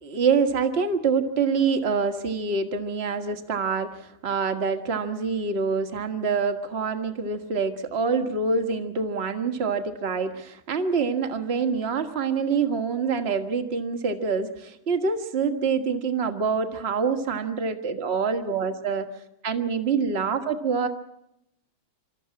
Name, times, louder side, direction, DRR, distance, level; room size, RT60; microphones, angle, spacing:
voice 1, 0.0-19.1 19.4-20.9, right 5 dB, 40° right, 7 dB, 0.9 m, -26 dB
26.5 x 13.5 x 9.8 m, 0.85 s
omnidirectional pair, 3.3 m